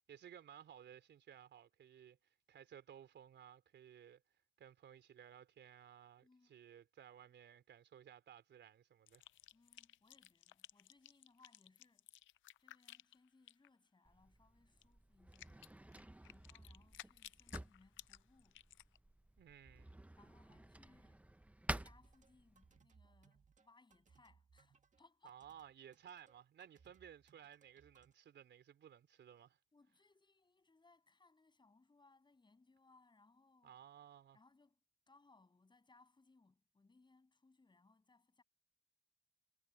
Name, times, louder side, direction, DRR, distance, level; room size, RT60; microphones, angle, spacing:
voice 1, 0.0-4.2 4.6-9.2 19.4-20.0 25.2-29.6 33.6-34.4, right 9 dB, 65° right, 3.9 m, -58 dB
voice 2, 6.2-6.6 9.5-12.1 12.6-16.0 16.2-18.6 20.2-21.3 21.8-25.4 29.7-33.8 34.3-34.8 35.1-38.4, left 3 dB, 25° left, 7.9 m, -70 dB
sound 1, 9.1-13.7 14.8-14.9 15.3-19.0, left 14 dB, 75° left, 0.6 m, -57 dB
Drawer open or close, 14.0-22.8, right 1 dB, 5° right, 0.8 m, -51 dB
sound 2, 22.0-28.1, right 5 dB, 40° right, 2.2 m, -71 dB
cardioid pair, 90°, 20 cm